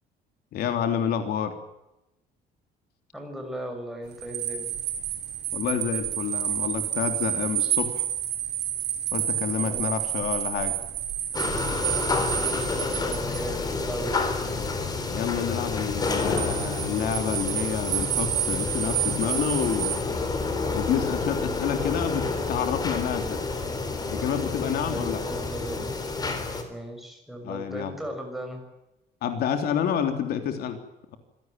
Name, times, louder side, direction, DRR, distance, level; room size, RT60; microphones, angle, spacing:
voice 1, 0.5-1.6 5.5-8.1 9.1-10.7 15.1-20.0 20.7-23.4 24.0-25.2 27.4-28.0 29.2-30.8, left 8 dB, 65° left, 7 dB, 3.3 m, -28 dB
voice 2, 3.1-4.7 9.6-9.9 12.4-14.2 14.5-14.7 24.8-26.0 26.7-28.6, equal, ahead, 3 dB, 6.3 m, -37 dB
sound 1, 4.2-13.5 16.0-20.0, right 11 dB, 75° right, 6.6 m, -30 dB
sound 2, 11.3-26.6, left 3 dB, 20° left, 4.0 m, -29 dB
26.5 x 17.5 x 9.2 m, 0.92 s
cardioid pair, 175°, 17 cm